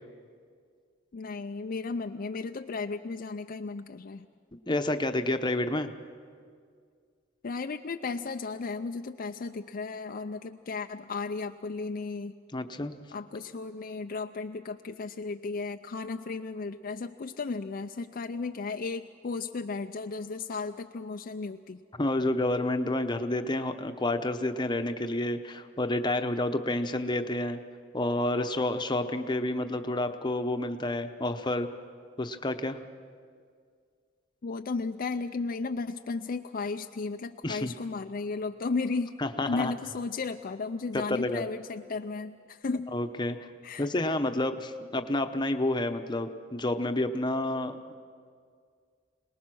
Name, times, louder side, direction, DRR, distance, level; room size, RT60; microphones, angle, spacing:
voice 1, 1.1-4.3 7.4-12.3 13.1-21.8 34.4-42.9 43.6-43.9, left 4 dB, 50° left, 6 dB, 0.5 m, -34 dB
voice 2, 4.7-5.9 12.5-13.0 22.0-27.6 27.9-31.7 32.2-32.8 37.4-37.7 39.2-39.7 41.1-41.4 42.9-43.5 43.8-48.0, left 1 dB, 25° left, 7 dB, 0.9 m, -29 dB
26.5 x 19.5 x 6.2 m, 2.1 s
head